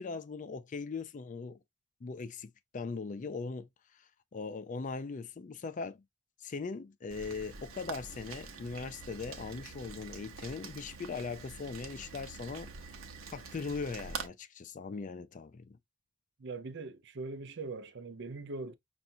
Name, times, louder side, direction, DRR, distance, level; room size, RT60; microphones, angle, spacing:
voice 1, 0.0-1.6 2.0-3.7 4.3-6.0 6.4-12.7 13.3-15.8, left 4 dB, 40° left, 0.4 m, -40 dB
Rain, 7.1-14.3, right 4 dB, 85° right, 0.9 m, -45 dB
voice 2, 16.4-18.7, right 3 dB, 60° right, 0.6 m, -41 dB
5.6 x 2.5 x 2.7 m
head